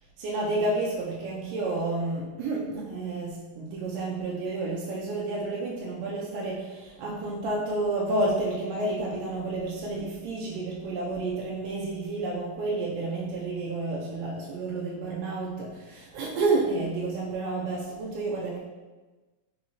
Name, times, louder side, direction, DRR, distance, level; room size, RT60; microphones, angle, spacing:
voice 1, 0.2-18.6, right 2 dB, 85° right, -5 dB, 2.2 m, -30 dB
5.4 x 2.7 x 2.8 m, 1.2 s
omnidirectional pair, 3.8 m